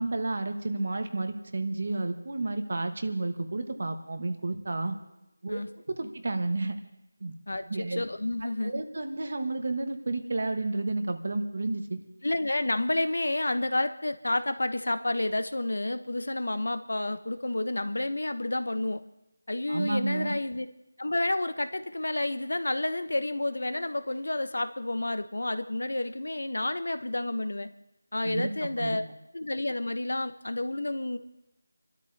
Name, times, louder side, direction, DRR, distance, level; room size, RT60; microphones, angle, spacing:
voice 1, 0.0-5.0 5.4-6.8 7.2-7.4 7.7-8.0 8.6-12.0 19.7-20.3 28.2-28.5 28.8-29.0, right 2 dB, 45° right, 7 dB, 1.4 m, -31 dB
voice 2, 7.5-8.8 12.2-19.0 19.5-20.7 21.0-27.7 28.1-29.0 29.3-31.2, left 2 dB, 75° left, 11 dB, 1.0 m, -30 dB
30.0 x 12.5 x 2.8 m, 0.88 s
figure-of-eight pair, 175°, 0 cm